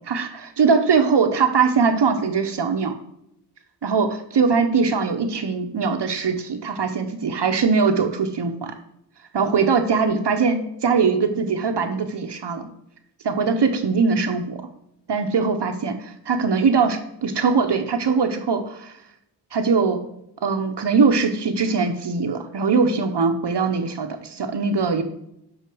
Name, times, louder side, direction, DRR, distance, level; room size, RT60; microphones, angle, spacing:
voice 1, 0.1-3.0 3.8-8.7 9.3-12.7 13.2-14.6 15.1-18.9 19.5-20.0 20.4-25.0, right 5 dB, 75° right, 6 dB, 1.0 m, -21 dB
6.3 x 5.8 x 6.2 m, 0.79 s
wide cardioid pair, 110°, 42 cm